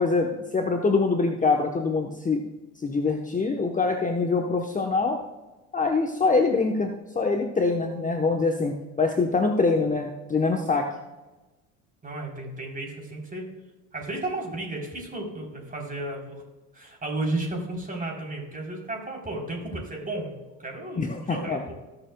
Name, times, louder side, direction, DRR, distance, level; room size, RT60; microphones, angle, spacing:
voice 1, 0.0-2.4 2.8-5.2 5.7-10.9 21.0-21.6, left 4 dB, 20° left, 3 dB, 1.0 m, -24 dB
voice 2, 12.0-13.5 13.9-16.4 16.7-21.6, right 2 dB, 20° right, 0 dB, 3.6 m, -33 dB
19.0 x 6.9 x 2.3 m, 1.1 s
hypercardioid pair, 75°, 39 cm